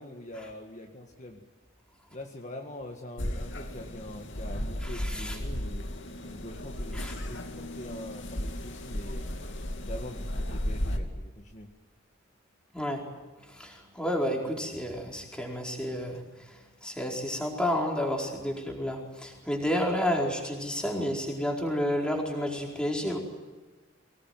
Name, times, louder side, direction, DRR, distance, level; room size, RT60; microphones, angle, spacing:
voice 1, 0.0-1.4 2.1-5.9 6.3-9.3 9.8-11.7, left 1 dB, 35° left, 2 dB, 1.9 m, -43 dB
sound 1, 3.2-11.0, equal, 65° left, 2.7 m, -35 dB
voice 2, 4.8-5.4 6.9-7.1 12.7-13.1 13.4-23.2, equal, 5° left, 0 dB, 4.6 m, -31 dB
24.0 x 19.5 x 9.3 m, 1.3 s
head